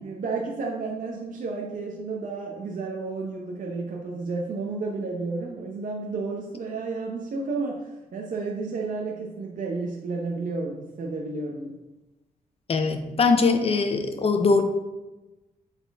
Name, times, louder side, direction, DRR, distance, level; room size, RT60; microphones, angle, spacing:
voice 1, 0.0-11.8, right 3 dB, 60° right, -1 dB, 0.8 m, -32 dB
voice 2, 12.7-14.6, left 4 dB, 40° left, 7 dB, 0.7 m, -21 dB
8.1 x 4.3 x 3.5 m, 1.1 s
wide cardioid pair, 135°, 15 cm